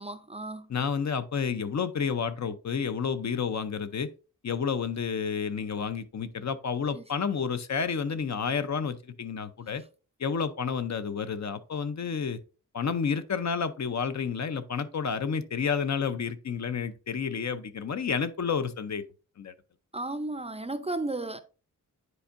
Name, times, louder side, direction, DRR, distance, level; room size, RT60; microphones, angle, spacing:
voice 1, 0.0-0.7 6.9-7.0 19.9-21.4, right 2 dB, 20° right, 0.4 m, -34 dB
voice 2, 0.7-4.1 4.4-9.8 10.2-12.4 12.7-19.0 19.4-19.5, left 6 dB, 60° left, 0.6 m, -30 dB
9.9 x 4.5 x 2.5 m
wide cardioid pair, 110°, 32 cm